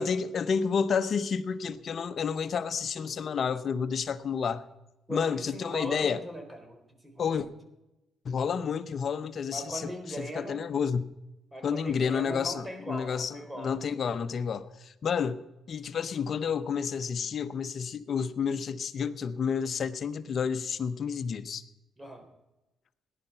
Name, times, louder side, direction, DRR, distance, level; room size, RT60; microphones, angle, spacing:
voice 1, 0.0-4.7 5.1-6.2 7.2-7.5 8.2-9.9 10.2-11.0 11.6-15.4 15.7-21.6, left 6 dB, 55° left, 0.9 m, -30 dB
voice 2, 5.1-7.5 9.5-10.7 11.5-13.8 22.0-22.3, right 1 dB, 15° right, 3.6 m, -40 dB
17.5 x 11.0 x 5.8 m
cardioid pair, 90°, 0 cm